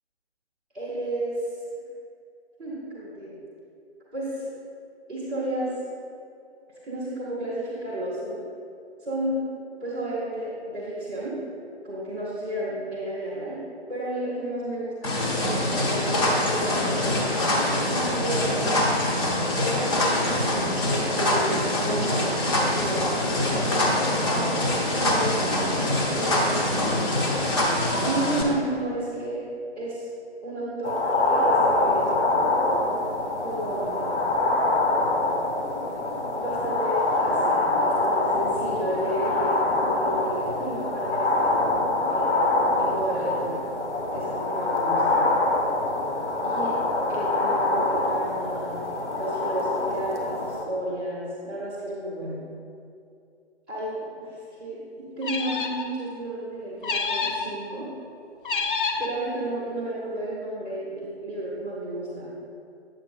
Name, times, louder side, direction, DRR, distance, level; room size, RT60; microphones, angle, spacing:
voice 1, 0.7-1.4 2.6-3.4 4.1-4.5 5.1-5.7 6.8-8.4 9.0-9.4 9.8-11.4 11.8-13.6 13.9-17.2 17.6-18.6 19.6-19.9 20.5-24.0 25.0-27.0 28.0-29.4 29.8-30.1 30.4-32.1 33.4-34.1 36.4-41.5 42.1-43.6 44.1-45.3 46.4-46.8 47.1-48.8 49.1-52.4 53.7-57.9 59.0-62.3, right 1 dB, ahead, -15 dB, 0.5 m, -32 dB
sound 1, 15.0-28.4, left 1 dB, 30° left, 1.1 m, -24 dB
sound 2, 30.8-50.6, left 2 dB, 90° left, 1.3 m, -25 dB
sound 3, 55.2-55.9 56.8-57.5 58.4-59.1, left 4 dB, 50° left, 0.7 m, -28 dB
8.9 x 7.8 x 2.4 m, 2.5 s
figure-of-eight pair, 140°, 34 cm